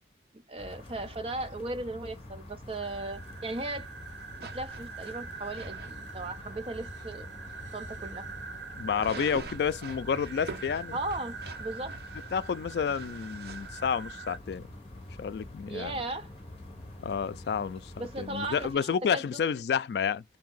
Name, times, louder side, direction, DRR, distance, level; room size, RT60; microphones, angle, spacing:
voice 1, 0.5-3.9 4.5-7.3 7.7-8.3 8.9-9.2 10.9-11.9 15.7-16.3 18.0-19.4, right 2 dB, 30° right, 0.5 m, -37 dB
sound 1, 0.6-18.7, left 1 dB, 35° left, 0.9 m, -46 dB
sound 2, 2.8-14.4, right 5 dB, 85° right, 1.0 m, -45 dB
sound 3, 4.4-5.9 6.5-6.6 7.0-7.1 7.5-7.6 9.0-13.7, right 3 dB, 60° right, 0.8 m, -45 dB
voice 2, 8.8-11.0 12.3-14.7 15.2-16.0 17.0-20.2, left 7 dB, 70° left, 0.3 m, -30 dB
3.5 x 2.7 x 3.9 m
head